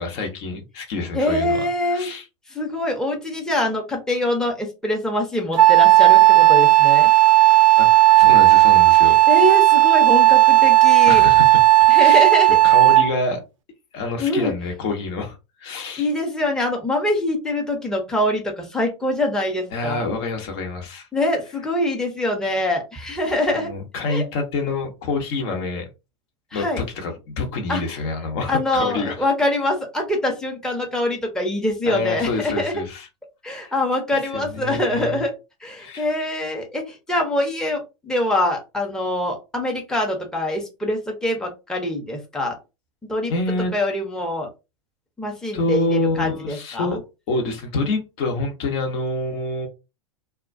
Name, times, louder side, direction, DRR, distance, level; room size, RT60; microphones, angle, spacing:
voice 1, 0.0-1.6 1.9-2.2 7.8-9.2 11.1-12.3 12.6-13.4 13.9-15.3 15.6-16.1 19.7-21.1 23.5-25.9 26.5-29.2 31.9-33.1 33.6-33.7 34.3-35.2 35.8-36.1 43.3-43.7 45.5-47.0 47.3-49.7, left 3 dB, 55° left, 3 dB, 0.9 m, -27 dB
voice 2, 1.1-2.1 2.5-7.1 9.3-11.3 11.9-12.6 14.2-14.5 16.0-20.0 21.1-23.7 24.1-24.2 26.5-26.8 27.7-27.8 28.5-32.7 33.4-35.3 35.6-42.6 43.1-43.3 43.7-44.5 45.2-47.0, left 1 dB, 5° left, 1 dB, 0.7 m, -24 dB
Wind instrument woodwind instrument, 5.6-13.2, right 17 dB, 75° right, 0.4 m, -13 dB
2.2 x 2.2 x 2.5 m, 0.27 s
hypercardioid pair, 100°, 17 cm